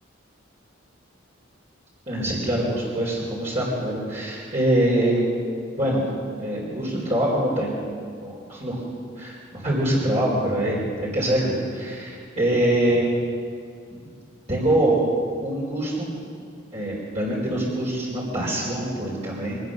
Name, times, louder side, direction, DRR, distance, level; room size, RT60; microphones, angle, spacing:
voice 1, 2.1-5.2 5.8-6.1 6.4-7.8 8.2-8.8 9.2-13.1 14.5-15.1 15.4-16.1 16.7-19.6, right 1 dB, 35° right, -6 dB, 4.4 m, -24 dB
23.5 x 19.5 x 6.7 m, 2.2 s
head